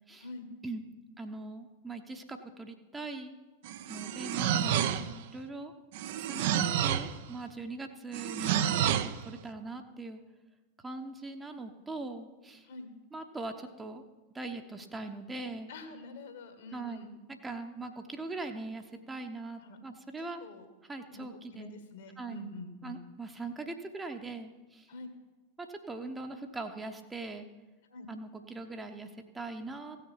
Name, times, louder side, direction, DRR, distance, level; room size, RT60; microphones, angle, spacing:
voice 1, 1.2-3.3 3.9-4.8 5.3-5.7 6.1-8.6 8.9-10.2 10.8-12.7 13.1-14.0 14.3-15.7 16.7-17.0 17.4-20.4 20.9-21.7 22.2-22.4 22.8-24.9 25.6-27.5 28.1-30.0, right 3 dB, 10° right, 5 dB, 0.9 m, -41 dB
sound 1, 3.6-5.2 5.9-7.2 8.1-9.2, right 10 dB, 50° right, 0.6 m, -29 dB
voice 2, 15.7-17.1 19.6-19.8 20.2-20.7 21.1-23.0 24.9-25.1 27.9-28.1, left 1 dB, 60° left, 6 dB, 1.7 m, -46 dB
16.0 x 6.7 x 5.6 m, 1.2 s
figure-of-eight pair, 90°, 0 cm